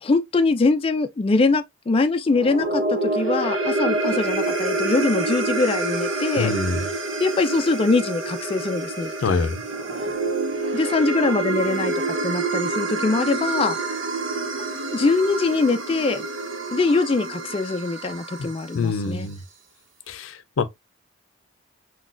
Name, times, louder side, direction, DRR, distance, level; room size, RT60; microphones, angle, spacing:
voice 1, 0.0-6.6 7.2-9.4 10.7-11.9 12.2-13.8 14.9-16.2 16.7-19.3, left 3 dB, 30° left, 0.3 m, -22 dB
sound 1, 2.3-18.7, right 3 dB, 80° right, 0.9 m, -27 dB
voice 2, 6.4-6.8 9.2-9.6 18.4-18.5 18.7-19.4 20.1-20.7, left 4 dB, 85° left, 0.5 m, -25 dB
3.8 x 2.3 x 2.4 m
head